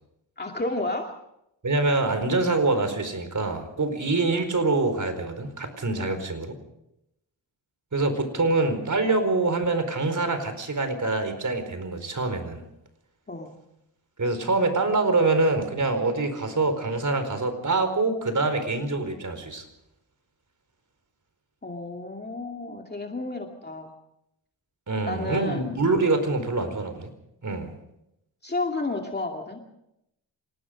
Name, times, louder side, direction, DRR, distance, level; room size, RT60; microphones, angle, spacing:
voice 1, 0.4-1.1 6.0-6.2 13.3-13.5 21.6-23.9 25.1-25.7 28.4-29.6, left 2 dB, 25° left, 2 dB, 2.5 m, -31 dB
voice 2, 1.6-6.5 7.9-12.6 14.2-19.6 24.9-27.1 27.4-27.7, right 3 dB, 45° right, 9 dB, 4.7 m, -25 dB
27.0 x 18.5 x 5.2 m, 0.82 s
cardioid pair, 75°, 43 cm